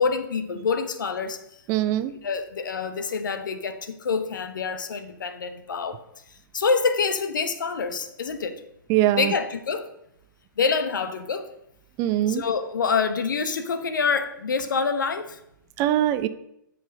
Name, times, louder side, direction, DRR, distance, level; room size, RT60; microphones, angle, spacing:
voice 1, 0.0-1.4 2.2-6.0 6.5-8.6 9.1-9.9 10.6-11.5 12.3-15.4, left 5 dB, 65° left, 1.0 m, -26 dB
voice 2, 1.7-2.1 8.9-9.3 12.0-12.4 15.8-16.3, right 13 dB, 25° right, 0.4 m, -22 dB
8.0 x 5.7 x 6.5 m
figure-of-eight pair, 120°, 11 cm